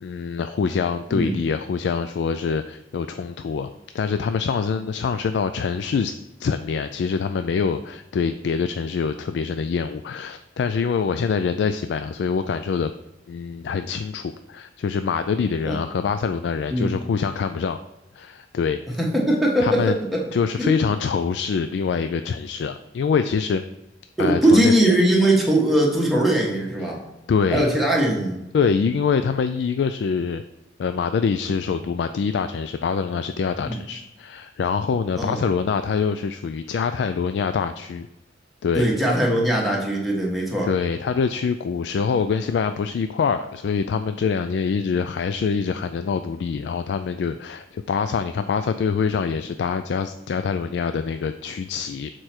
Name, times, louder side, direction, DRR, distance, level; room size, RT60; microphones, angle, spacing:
voice 1, 0.0-3.7 3.9-12.9 13.3-17.8 18.1-18.8 19.6-20.0 20.3-23.6 24.2-24.7 26.8-27.0 27.3-27.7 28.5-30.4 30.8-38.1 38.6-38.9 40.6-52.1, left 5 dB, 65° left, 9 dB, 0.3 m, -25 dB
voice 2, 19.0-20.2 20.6-20.7 24.2-27.0 27.5-28.4 33.6-33.8 35.2-35.4 38.7-40.7, right 1 dB, ahead, -3 dB, 1.4 m, -20 dB
6.6 x 4.5 x 4.3 m, 0.94 s
head